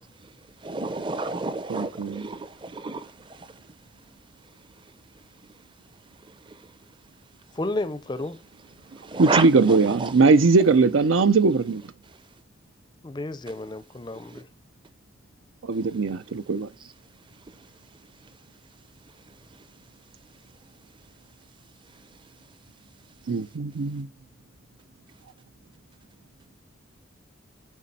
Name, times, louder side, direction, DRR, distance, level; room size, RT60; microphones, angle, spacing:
voice 1, 0.2-3.7 4.4-5.3 6.2-6.8 8.8-10.2 12.0-12.2 13.5-13.6 14.1-14.4 15.7-16.3 16.8-16.9 17.3-17.7 18.2-18.3 19.1-19.7 21.9-22.3, right 3 dB, 25° right, 0.6 m, -34 dB
voice 2, 1.7-2.2 9.2-11.8 15.7-16.7 23.3-24.1, right 4 dB, 80° right, 0.6 m, -20 dB
voice 3, 7.5-8.4 13.0-14.5, left 2 dB, 20° left, 0.4 m, -32 dB
9.4 x 5.1 x 4.2 m
head